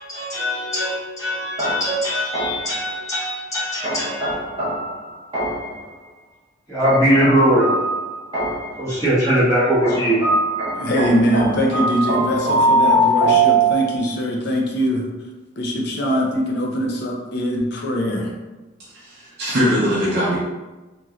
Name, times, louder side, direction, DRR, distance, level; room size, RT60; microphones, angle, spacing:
voice 1, 0.0-4.4 6.7-7.7 8.8-10.2, equal, 15° left, -12 dB, 1.4 m, -20 dB
sound 1, 1.6-2.8 3.8-5.8 6.8-8.8 9.8-14.1, right 2 dB, 25° right, 1.0 m, -21 dB
voice 2, 10.7-15.1 15.6-18.3, equal, 55° left, -1 dB, 0.5 m, -22 dB
voice 3, 18.9-20.4, equal, 50° right, -7 dB, 0.6 m, -21 dB
3.0 x 2.9 x 2.4 m, 1.1 s
head